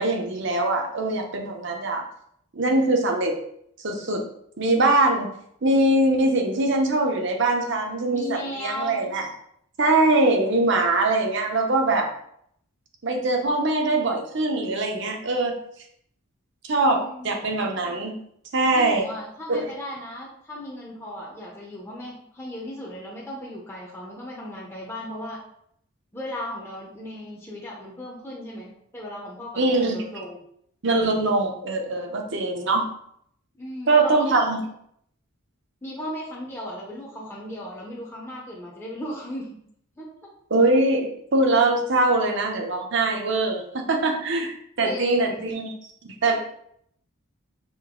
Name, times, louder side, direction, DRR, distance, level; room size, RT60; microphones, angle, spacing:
voice 1, 0.0-2.0 2.5-3.4 3.8-4.2 4.6-5.3 5.6-9.3 9.8-12.1 13.0-15.5 16.7-18.2 18.5-19.1 19.5-19.7 29.6-30.1 30.8-32.9 33.9-34.6 40.5-45.7 46.2-46.4, right 2 dB, 55° right, 3 dB, 0.7 m, -22 dB
voice 2, 8.1-9.0 16.9-17.6 18.7-25.4 26.1-30.4 33.6-34.4 35.8-39.6 40.0-40.3 44.8-45.4, equal, 10° left, -4 dB, 0.7 m, -36 dB
5.2 x 2.6 x 3.7 m, 0.70 s
head